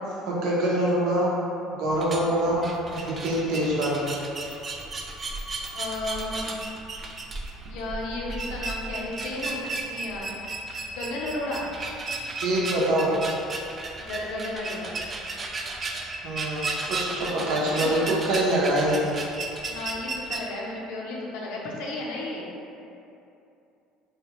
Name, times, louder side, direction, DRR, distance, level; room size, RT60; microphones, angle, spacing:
voice 1, 0.3-1.3 1.7-2.6 2.9-4.1 12.4-13.1 16.2-19.0, right 1 dB, 70° right, -5 dB, 0.7 m, -25 dB
sound 1, 1.9-20.4, right 3 dB, 30° right, 0.3 m, -34 dB
voice 2, 2.2-2.5 5.7-6.6 7.7-10.3 10.9-11.6 14.0-14.9 17.7-18.1 19.6-22.5, left 2 dB, 75° left, -3 dB, 0.6 m, -34 dB
3.1 x 2.4 x 2.9 m, 2.7 s
supercardioid pair, 105°, 0 cm